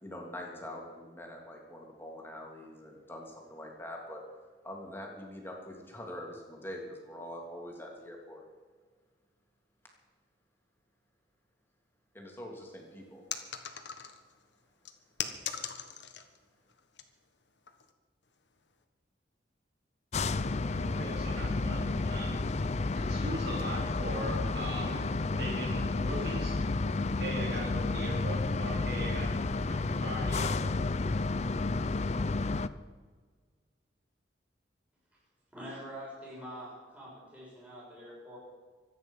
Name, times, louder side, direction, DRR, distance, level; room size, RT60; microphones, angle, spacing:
voice 1, 0.0-4.2 4.6-8.4 12.1-13.2, left 1 dB, 10° left, 0 dB, 3.0 m, -44 dB
sound 1, 13.3-14.3 14.8-16.4 16.7-17.0 17.7-17.9, left 8 dB, 70° left, 1.4 m, -39 dB
sound 2, 20.1-32.7, left 3 dB, 35° left, 0.5 m, -31 dB
voice 2, 20.6-22.5 22.9-25.1 25.3-26.6 27.2-29.3 29.7-30.8, right 1 dB, 60° right, -2 dB, 3.6 m, -40 dB
voice 3, 35.5-38.4, equal, 10° right, -7 dB, 6.6 m, -45 dB
24.5 x 9.5 x 5.6 m, 1.5 s
head